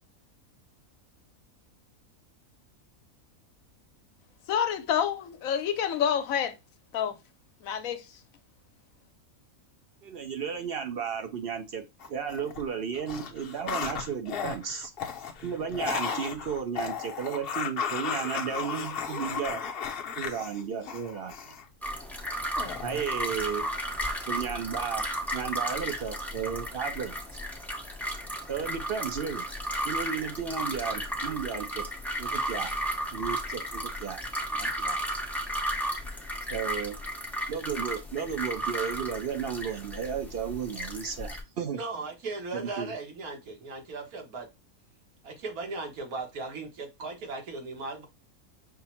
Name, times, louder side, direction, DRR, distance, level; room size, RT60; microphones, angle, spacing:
voice 1, 4.5-6.6 6.9-7.2 7.6-8.1, left 8 dB, 75° left, 1.0 m, -28 dB
voice 2, 10.0-11.8 12.1-14.9 15.4-19.6 20.2-21.5 22.8-23.6 24.3-27.1 28.5-29.5 29.8-31.8 32.2-32.7 33.1-34.2 34.5-35.0 36.5-37.0 37.5-41.8 42.5-42.9, right 7 dB, 55° right, 0.7 m, -34 dB
sound 1, 12.0-12.6 12.9-21.6 22.6-23.7 24.0-24.4, left 7 dB, 55° left, 0.7 m, -35 dB
sound 2, 21.8-41.4, right 1 dB, ahead, 0.3 m, -34 dB
voice 3, 41.7-44.5 45.2-48.1, right 3 dB, 85° right, 1.6 m, -37 dB
5.6 x 2.0 x 4.2 m
omnidirectional pair, 1.5 m